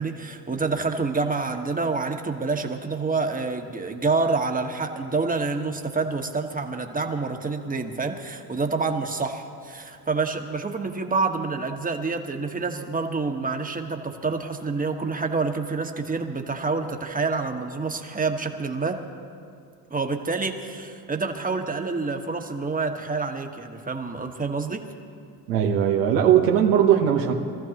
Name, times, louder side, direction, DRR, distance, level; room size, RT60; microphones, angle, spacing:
voice 1, 0.0-19.0 19.9-24.8, right 4 dB, 15° right, 4 dB, 1.4 m, -27 dB
voice 2, 25.5-27.3, right 9 dB, 85° right, 1 dB, 1.2 m, -19 dB
23.5 x 14.0 x 3.0 m, 2.4 s
hypercardioid pair, 70°, 48 cm